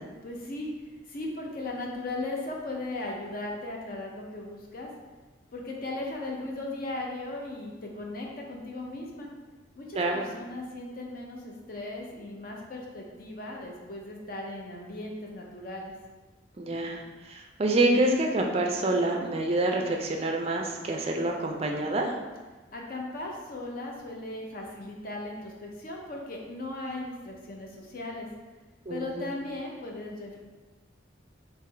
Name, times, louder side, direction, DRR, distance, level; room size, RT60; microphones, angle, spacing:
voice 1, 0.2-0.7 1.1-4.9 5.5-9.3 9.7-15.9 22.7-28.3 28.9-30.4, left 2 dB, 45° left, 0 dB, 0.6 m, -37 dB
voice 2, 16.6-17.0 17.3-22.1 28.9-29.3, right 2 dB, 30° right, 1 dB, 0.4 m, -27 dB
3.7 x 3.0 x 3.3 m, 1.3 s
head